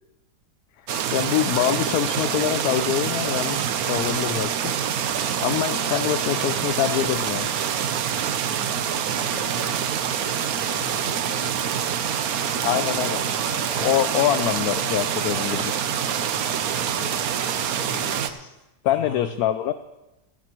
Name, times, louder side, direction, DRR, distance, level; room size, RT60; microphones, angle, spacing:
sound 1, 0.9-18.3, right 8 dB, 70° right, 1.2 m, -26 dB
voice 1, 1.1-4.7 5.4-7.5 12.6-15.8 18.2-18.5 18.8-19.7, left 12 dB, 75° left, 11 dB, 1.0 m, -25 dB
voice 2, 9.1-11.7 12.5-13.1 15.7-16.0 16.4-19.3, left 2 dB, 30° left, -3 dB, 4.2 m, -43 dB
17.5 x 14.5 x 3.0 m, 0.99 s
omnidirectional pair, 1.6 m